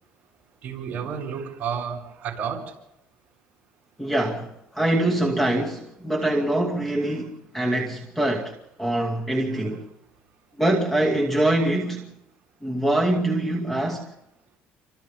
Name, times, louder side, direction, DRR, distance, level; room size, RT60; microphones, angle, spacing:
voice 1, 0.6-2.7 9.5-9.6, right 7 dB, 40° right, 7.2 m, -31 dB
voice 2, 4.0-8.5 8.8-9.9 10.6-12.1 12.6-14.0, right 1 dB, 5° left, 2.3 m, -24 dB
29.5 x 25.5 x 3.6 m
cardioid pair, 150°, 4 cm